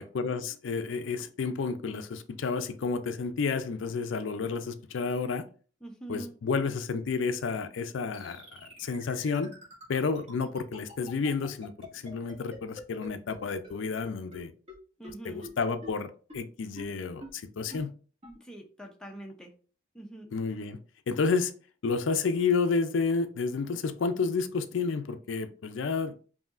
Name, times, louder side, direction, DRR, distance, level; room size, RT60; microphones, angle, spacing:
voice 1, 0.1-5.5 6.1-9.5 9.9-14.5 15.2-17.9 20.3-20.8 21.1-21.5 21.8-26.2, left 4 dB, 70° left, 0.4 m, -30 dB
voice 2, 5.8-6.3 15.0-15.5 18.4-19.5 19.9-20.3, right 1 dB, 5° left, 0.5 m, -43 dB
sound 1, 8.1-13.4 13.6-13.7 14.0-14.1 14.3-14.4 14.7-14.8 15.0-15.1 15.4-15.5 15.8-15.9 16.3-16.4 16.8-16.9 17.2-17.3 17.7-17.8 18.2-18.3, left 1 dB, 30° right, 1.9 m, -45 dB
5.3 x 2.7 x 2.4 m
head